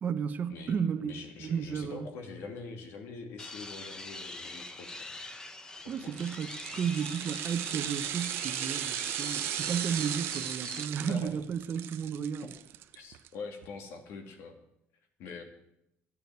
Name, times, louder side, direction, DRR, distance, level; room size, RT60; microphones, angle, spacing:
voice 1, 0.0-1.1 1.4-2.1 5.9-12.5, right 7 dB, 40° right, 0.9 m, -33 dB
voice 2, 1.0-5.0 6.0-6.1 11.0-11.4 12.9-14.6 15.2-15.4, left 4 dB, 75° left, 2.7 m, -44 dB
sound 1, 3.4-10.9, left 2 dB, 15° left, 1.0 m, -43 dB
sound 2, 6.0-13.3 13.6-13.7, right 14 dB, 65° right, 0.7 m, -37 dB
12.5 x 9.3 x 9.4 m
cardioid pair, 155°, 4 cm